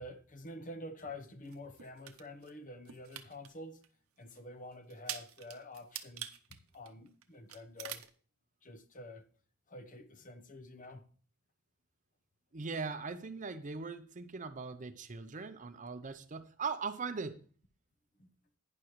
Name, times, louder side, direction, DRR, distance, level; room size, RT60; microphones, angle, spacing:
voice 1, 0.0-3.8 4.2-8.0 8.6-9.2 9.7-11.0 18.2-18.3, left 1 dB, 40° left, 0.9 m, -48 dB
sound 1, 1.5-2.5 2.8-3.5 3.8-3.9 4.3-4.4 4.9-7.2 7.5-8.1, right 11 dB, 75° right, 0.7 m, -44 dB
voice 2, 12.5-17.4, right 4 dB, 35° right, 0.6 m, -40 dB
11.5 x 9.8 x 3.1 m
head